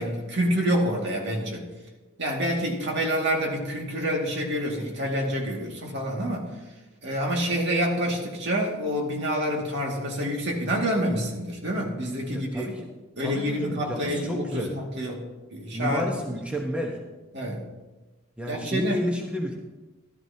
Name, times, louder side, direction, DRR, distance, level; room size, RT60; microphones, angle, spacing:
voice 1, 0.0-1.7 2.2-6.5 7.0-12.7 13.2-15.2 15.5-16.0 17.3-17.7 18.5-19.0, equal, 55° right, -1 dB, 2.1 m, -27 dB
voice 2, 12.0-12.9 13.2-14.7 15.7-17.0 18.4-19.5, equal, 5° right, 0 dB, 1.0 m, -31 dB
14.0 x 12.5 x 2.8 m, 1.1 s
head